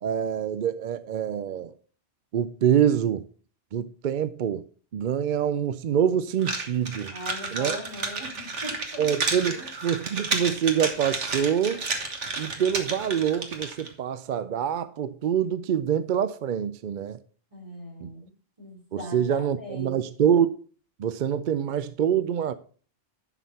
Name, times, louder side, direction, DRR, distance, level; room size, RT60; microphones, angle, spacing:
voice 1, 0.0-1.7 2.3-3.2 3.7-4.6 4.9-7.1 7.5-7.8 9.0-11.8 12.4-17.2 18.0-18.1 18.9-20.5 21.0-22.5, right 9 dB, 60° right, 0.5 m, -25 dB
sound 1, 6.4-13.9, right 3 dB, 80° right, 1.8 m, -31 dB
voice 2, 7.1-9.1 9.6-9.7 17.5-18.3 18.6-20.0, equal, 30° right, 3.8 m, -40 dB
11.0 x 6.2 x 4.1 m
omnidirectional pair, 1.2 m